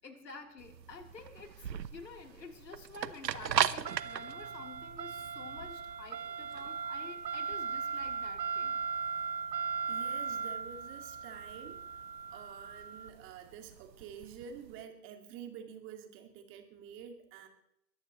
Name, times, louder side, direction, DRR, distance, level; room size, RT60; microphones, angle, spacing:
voice 1, 0.0-8.8, left 4 dB, 80° left, 3 dB, 3.6 m, -50 dB
sound 1, 0.6-14.7, right 7 dB, 80° right, 1.0 m, -37 dB
voice 2, 9.9-11.9 12.3-17.5, right 8 dB, 25° right, 5 dB, 2.1 m, -48 dB
23.0 x 14.5 x 3.1 m, 0.78 s
hypercardioid pair, 130°, 49 cm